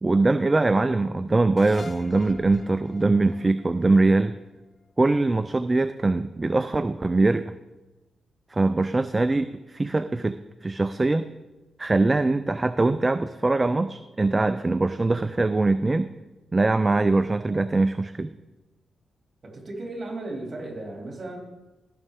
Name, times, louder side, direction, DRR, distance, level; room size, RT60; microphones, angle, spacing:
voice 1, 0.0-4.4 5.0-7.5 8.5-11.3 11.8-16.1 16.5-18.3, right 2 dB, 25° right, 11 dB, 0.4 m, -22 dB
sound 1, 1.6-4.9, left 4 dB, 45° left, 0.6 m, -46 dB
voice 2, 19.4-21.4, right 2 dB, 40° right, 0 dB, 3.0 m, -35 dB
15.0 x 6.4 x 3.6 m, 1.1 s
cardioid pair, 75°, 0 cm